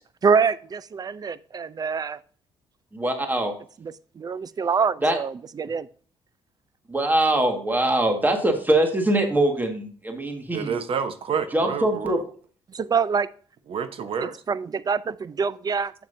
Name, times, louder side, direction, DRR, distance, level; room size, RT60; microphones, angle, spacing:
voice 1, 0.2-2.2 3.8-5.9 12.7-13.3 14.2-15.9, right 5 dB, 40° right, 17 dB, 0.5 m, -25 dB
voice 2, 2.9-3.5 5.0-5.2 6.9-10.7 11.5-12.2, right 1 dB, 15° right, 4 dB, 1.7 m, -22 dB
voice 3, 10.5-12.1 13.7-14.3, right 6 dB, 60° right, 11 dB, 1.0 m, -28 dB
7.6 x 7.4 x 2.7 m, 0.44 s
cardioid pair, 80°, 11 cm